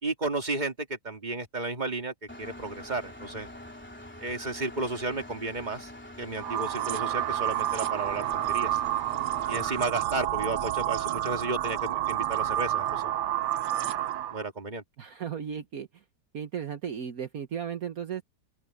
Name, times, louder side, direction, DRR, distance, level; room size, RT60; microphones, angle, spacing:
voice 1, 0.0-3.5 4.2-5.9 6.2-8.8 9.5-13.1 14.3-14.8, right 2 dB, 25° right, 2.6 m, -33 dB
Engine, 2.3-9.9, left 1 dB, 5° left, 3.1 m, -45 dB
sound 1, 6.4-14.4, right 13 dB, 90° right, 1.4 m, -29 dB
voice 2, 15.0-16.0 16.3-18.2, right 8 dB, 60° right, 1.6 m, -35 dB
open air
omnidirectional pair, 1.8 m